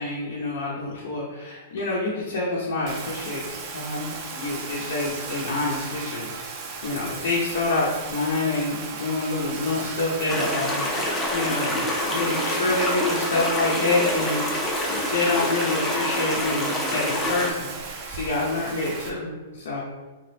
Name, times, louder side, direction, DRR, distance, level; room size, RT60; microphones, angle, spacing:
voice 1, 0.0-3.4 3.7-6.3 6.8-19.8, left 2 dB, 75° left, -6 dB, 0.6 m, -27 dB
Bathtub (filling or washing), 2.9-19.1, right 4 dB, 40° right, 0.5 m, -36 dB
sound 1, 10.3-17.5, left 1 dB, 10° left, 0.5 m, -27 dB
2.8 x 2.3 x 3.2 m, 1.2 s
hypercardioid pair, 140°, 0 cm